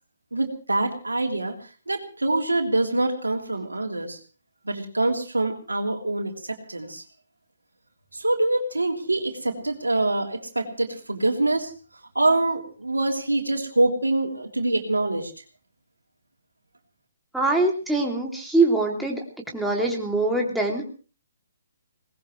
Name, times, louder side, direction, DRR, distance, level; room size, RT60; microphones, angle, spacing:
voice 1, 0.3-1.5 1.9-4.2 4.6-7.0 8.1-11.7 12.1-15.3, right 2 dB, 90° right, 3 dB, 3.2 m, -25 dB
voice 2, 17.3-19.2 19.5-20.8, right 2 dB, ahead, -2 dB, 3.0 m, -23 dB
21.5 x 19.5 x 3.3 m, 0.37 s
figure-of-eight pair, 135°, 0 cm